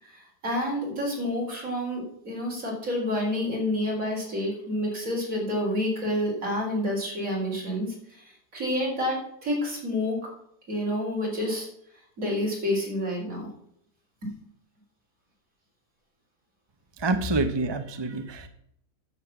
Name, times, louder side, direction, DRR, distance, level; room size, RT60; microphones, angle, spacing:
voice 1, 0.0-10.2 10.7-11.7 12.2-13.5 14.2-14.3, left 1 dB, 55° right, -2 dB, 4.5 m, -29 dB
voice 2, 17.0-18.5, right 2 dB, 25° right, 8 dB, 0.6 m, -27 dB
10.0 x 7.4 x 7.2 m, 0.72 s
omnidirectional pair, 1.7 m